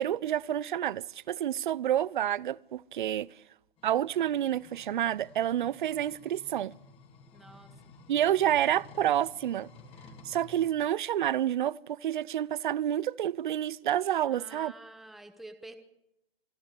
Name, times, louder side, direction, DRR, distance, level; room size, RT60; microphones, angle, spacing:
voice 1, 0.0-3.3 3.8-6.7 8.1-9.7 10.2-14.7, right 11 dB, 55° right, 0.7 m, -29 dB
sound 1, 3.8-10.7, left 3 dB, 20° left, 2.5 m, -54 dB
voice 2, 7.3-7.7 14.2-15.7, right 2 dB, ahead, 1.3 m, -48 dB
26.5 x 11.5 x 9.8 m
hypercardioid pair, 140°, 29 cm